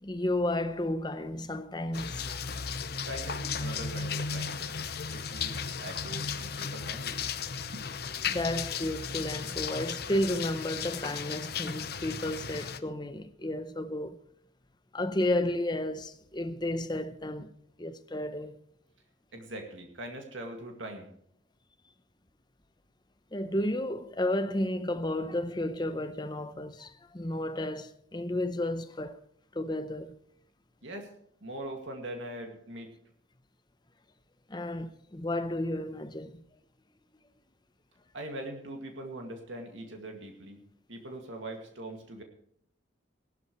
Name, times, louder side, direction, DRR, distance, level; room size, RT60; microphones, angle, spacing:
voice 1, 0.0-2.3 8.3-14.2 14.9-17.5 17.8-18.6 23.3-29.2 29.5-30.1 34.5-36.4, left 1 dB, 20° left, 0.7 m, -32 dB
sound 1, 1.9-12.8, left 6 dB, 55° left, 0.8 m, -35 dB
voice 2, 3.0-4.8 5.1-7.2 7.7-7.8 19.3-21.1 30.8-31.1 31.4-32.9 38.1-40.6 40.9-42.2, right 1 dB, 80° right, 2.1 m, -42 dB
18.0 x 12.0 x 3.1 m
head